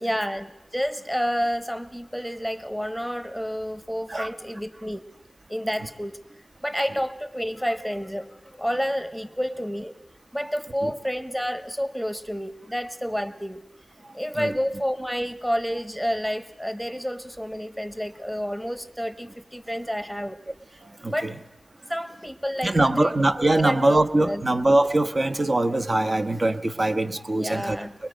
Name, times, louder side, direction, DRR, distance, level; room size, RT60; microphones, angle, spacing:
voice 1, 0.0-5.0 5.5-6.2 6.6-10.0 10.3-13.6 14.1-20.4 21.1-21.3 21.9-24.5 27.3-27.9, equal, 5° right, 10 dB, 1.2 m, -29 dB
voice 2, 22.6-27.8, right 2 dB, 45° right, 8 dB, 1.1 m, -22 dB
24.0 x 21.5 x 5.1 m, 1.0 s
cardioid pair, 50°, 0 cm